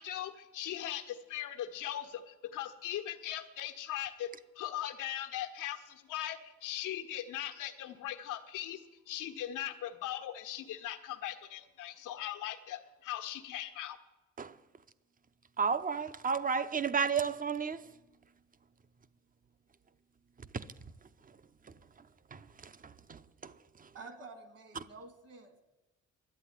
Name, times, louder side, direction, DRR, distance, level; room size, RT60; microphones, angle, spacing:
voice 1, 0.0-4.3 4.5-14.0, left 12 dB, 90° left, 1.3 m, -39 dB
voice 2, 15.6-17.8 20.5-20.7 22.3-22.4 23.1-23.5, right 6 dB, 30° right, 0.7 m, -32 dB
voice 3, 23.9-25.6, right 3 dB, 55° right, 2.2 m, -50 dB
11.5 x 8.6 x 9.9 m
cardioid pair, 90°, 30 cm